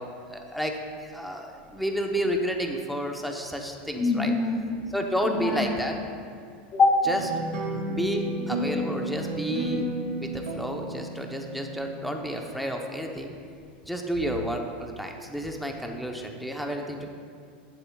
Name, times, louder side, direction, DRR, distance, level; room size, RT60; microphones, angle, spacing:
voice 1, 0.0-4.3 4.9-6.0 7.0-7.2 7.9-9.8 10.2-13.3 13.8-17.1, equal, ahead, 2 dB, 0.7 m, -31 dB
voice 2, 4.0-4.7 5.2-5.7 6.7-7.1, left 3 dB, 25° left, -2 dB, 1.9 m, -23 dB
sound 1, 7.0-12.1, right 1 dB, 80° right, 2.1 m, -32 dB
15.5 x 7.2 x 2.3 m, 2.3 s
supercardioid pair, 150°, 5 cm